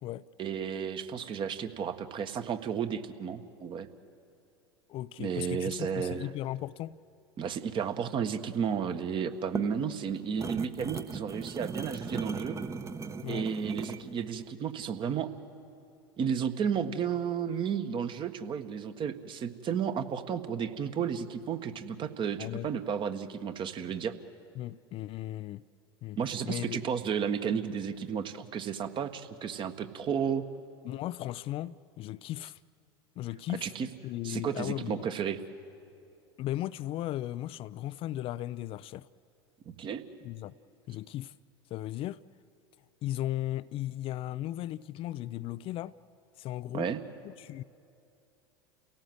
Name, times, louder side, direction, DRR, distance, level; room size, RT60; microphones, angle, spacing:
voice 1, 0.4-3.9 5.2-6.3 7.4-12.6 13.3-15.3 16.2-24.1 26.2-30.4 33.6-33.9 34.2-35.4 39.8-40.0 46.7-47.0, right 7 dB, 35° right, 1.6 m, -33 dB
voice 2, 4.9-7.0 13.2-13.5 22.4-22.7 24.6-25.6 26.0-26.2 26.5-26.8 30.8-32.6 33.2-33.7 34.0-35.1 36.4-39.1 40.2-40.5 40.9-41.3 41.7-42.2 43.0-46.0 46.4-46.9 47.2-47.6, left 14 dB, 40° left, 0.5 m, -36 dB
sound 1, 9.3-14.1, right 4 dB, 20° right, 1.1 m, -38 dB
30.0 x 17.5 x 7.9 m
hypercardioid pair, 80°, 14 cm